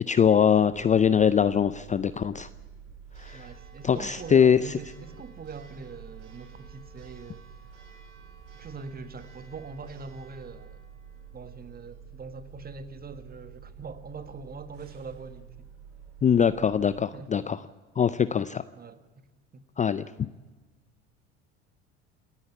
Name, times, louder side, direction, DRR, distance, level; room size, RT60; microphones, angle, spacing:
voice 1, 0.1-2.5 3.2-3.5 3.8-4.6 16.2-17.6 18.0-18.6 19.8-20.1, left 7 dB, 20° left, 0.5 m, -22 dB
Church bell, 0.7-17.0, right 7 dB, 80° right, 4.5 m, -48 dB
voice 2, 3.3-7.4 8.5-10.8 11.3-15.6 17.1-17.5 18.7-19.0 19.5-19.6, right 4 dB, 25° right, 1.6 m, -42 dB
28.5 x 9.8 x 9.4 m
hypercardioid pair, 80°, 35 cm